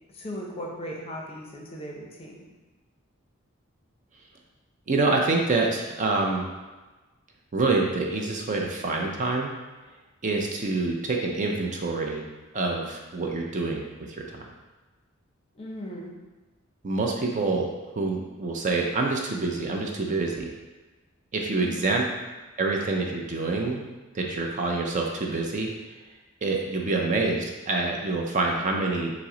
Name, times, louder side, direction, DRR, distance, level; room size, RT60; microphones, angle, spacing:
voice 1, 0.1-2.4 15.5-16.1 21.6-22.0, equal, 30° left, -1 dB, 0.6 m, -37 dB
voice 2, 4.9-6.4 7.5-9.5 10.2-12.2 12.5-13.8 14.3-14.5 16.8-17.7 17.9-20.5 21.3-22.0 22.6-23.9 24.1-25.7 26.4-29.1, right 3 dB, 35° right, 0 dB, 0.5 m, -26 dB
5.7 x 2.1 x 3.7 m, 1.2 s
head